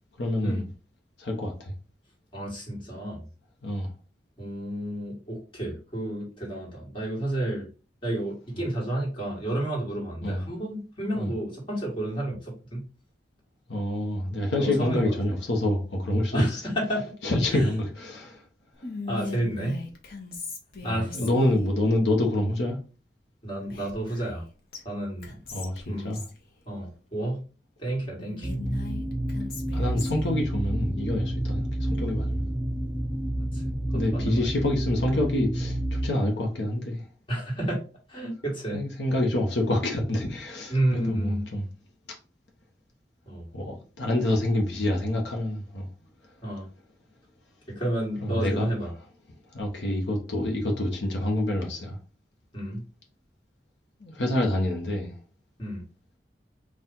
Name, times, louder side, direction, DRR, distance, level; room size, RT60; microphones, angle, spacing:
voice 1, 0.2-0.7 1.2-1.7 3.6-3.9 10.2-10.4 11.2-11.3 13.7-16.6 17.2-18.4 20.9-22.8 25.5-26.2 29.7-32.5 33.9-37.0 38.7-41.6 43.5-45.9 48.2-48.7 49.5-52.0 54.0-55.1, left 1 dB, 80° left, 0.9 m, -27 dB
voice 2, 2.3-3.2 4.4-7.7 8.0-12.8 14.5-15.1 16.3-17.1 17.5-17.7 19.1-19.8 20.8-21.3 23.4-24.4 24.9-25.3 25.9-26.2 26.7-27.4 27.8-28.5 33.5-33.6 33.9-34.5 37.3-37.8 38.1-38.8 40.7-41.4 43.3-43.5 46.4-46.7 47.7-48.9 52.5-52.8 55.6-55.8, right 1 dB, 30° left, 1.7 m, -30 dB
Whispering, 18.8-21.7 23.7-24.4 24.7-24.8 25.2-26.4 28.2-30.3, left 3 dB, 55° left, 0.9 m, -39 dB
sound 1, 28.4-36.1, right 1 dB, 10° right, 0.4 m, -29 dB
4.4 x 2.4 x 3.7 m
head